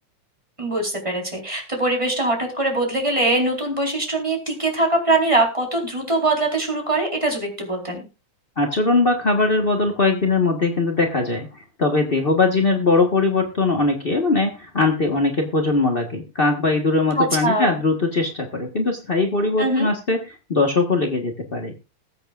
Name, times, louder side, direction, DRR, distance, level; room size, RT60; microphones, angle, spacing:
voice 1, 0.6-8.0 17.2-17.8 19.6-19.9, right 2 dB, 10° right, 0 dB, 4.0 m, -22 dB
voice 2, 8.6-21.7, left 3 dB, 45° left, 2 dB, 0.7 m, -21 dB
21.0 x 8.1 x 2.5 m, 0.29 s
omnidirectional pair, 3.5 m